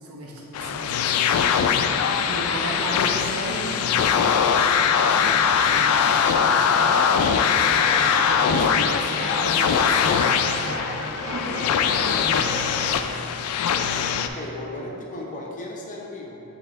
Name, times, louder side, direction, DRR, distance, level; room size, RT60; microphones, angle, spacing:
voice 1, 0.0-7.3 7.6-12.5, right 1 dB, 75° right, -2 dB, 0.9 m, -35 dB
sound 1, 0.5-14.3, left 7 dB, 85° left, 0.3 m, -21 dB
sound 2, 7.7-12.9, right 1 dB, 15° right, 0.7 m, -35 dB
voice 2, 14.3-16.4, left 1 dB, 35° left, -2 dB, 0.6 m, -35 dB
7.6 x 3.5 x 3.5 m, 2.8 s
head